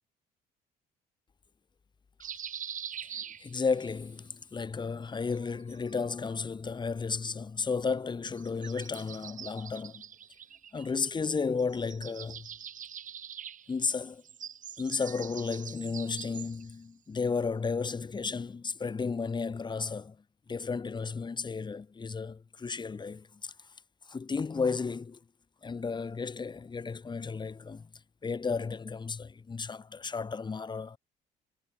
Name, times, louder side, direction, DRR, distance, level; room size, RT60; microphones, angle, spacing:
sound 1, 2.2-3.9 5.3-6.4 8.3-11.3 11.6-16.8, right 9 dB, 50° right, 6.1 m, -44 dB
voice 1, 3.0-10.0 10.7-12.5 13.7-14.2 14.8-20.2 20.5-23.5 24.1-25.2 25.6-27.9 28.2-31.0, left 5 dB, 25° left, 4.0 m, -33 dB
cardioid pair, 110°, 17 cm